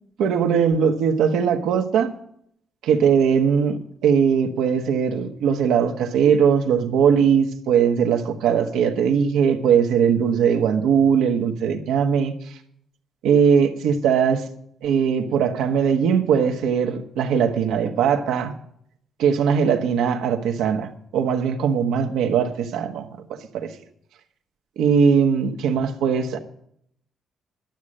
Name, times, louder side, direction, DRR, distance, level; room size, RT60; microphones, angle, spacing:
voice 1, 0.2-2.1 2.8-12.5 13.2-14.4 14.8-18.5 19.2-23.1 23.5-23.7 24.8-26.4, right 7 dB, 85° right, 4 dB, 1.3 m, -20 dB
12.0 x 6.5 x 8.6 m, 0.69 s
cardioid pair, 90°, 0 cm